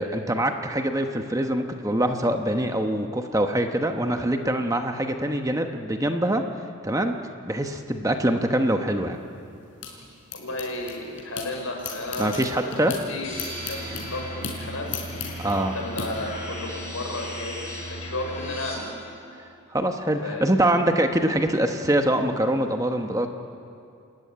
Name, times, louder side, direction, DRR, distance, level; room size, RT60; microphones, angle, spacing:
voice 1, 0.0-6.4 6.8-7.1 7.4-9.2 12.2-12.9 15.4-15.7 19.7-23.3, right 1 dB, 15° right, 5 dB, 1.0 m, -24 dB
sound 1, 9.1-11.5 11.8-16.1, left 5 dB, 60° left, 5.0 m, -37 dB
voice 2, 10.3-18.9 20.2-20.5, left 2 dB, 90° left, 1 dB, 5.4 m, -33 dB
sound 2, 13.2-18.7, equal, 30° left, 7.9 m, -36 dB
29.0 x 14.5 x 9.6 m, 2.5 s
head